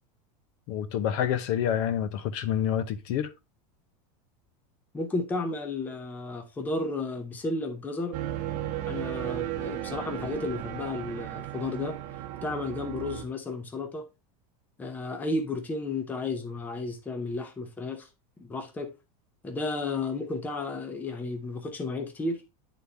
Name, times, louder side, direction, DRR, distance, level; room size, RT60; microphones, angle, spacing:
voice 1, 0.7-3.3, left 9 dB, 45° left, 0.8 m, -28 dB
voice 2, 4.9-8.2 8.9-12.0 12.4-14.1 14.8-18.1 18.4-18.9 19.4-22.5, left 3 dB, 10° left, 0.7 m, -33 dB
sound 1, 8.1-13.2, right 13 dB, 45° right, 1.1 m, -35 dB
9.7 x 4.0 x 3.3 m
supercardioid pair, 175°, 20 cm